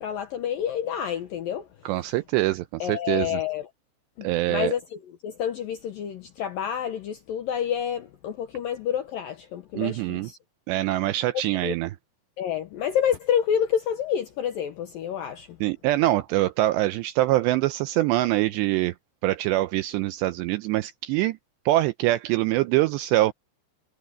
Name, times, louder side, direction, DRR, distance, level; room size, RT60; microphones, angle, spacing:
voice 1, 0.0-1.7 2.8-3.7 4.2-10.4 11.5-11.8 12.4-15.6, left 9 dB, 75° left, 2.1 m, -28 dB
voice 2, 1.9-3.4 4.2-4.7 9.8-10.3 10.7-11.9 15.6-18.9 19.2-21.4 21.7-23.3, right 16 dB, 85° right, 2.5 m, -24 dB
omnidirectional pair, 5.5 m